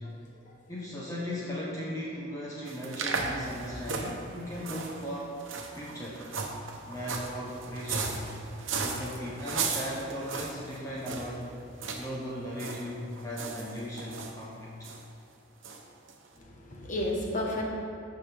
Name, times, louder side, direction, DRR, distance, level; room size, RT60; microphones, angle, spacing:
voice 1, 0.7-5.4 5.7-6.2 6.9-8.3 8.8-11.5 12.0-14.7, equal, 15° left, -6 dB, 1.0 m, -37 dB
sound 1, 2.7-11.4 11.8-12.1 12.3-12.8 13.1-14.3 14.8-15.0 15.6-15.8 16.1-16.2, right 4 dB, 80° right, 1.0 m, -35 dB
voice 2, 16.3-17.6, left 1 dB, 40° left, -2 dB, 1.4 m, -33 dB
14.5 x 5.8 x 3.6 m, 2.4 s
head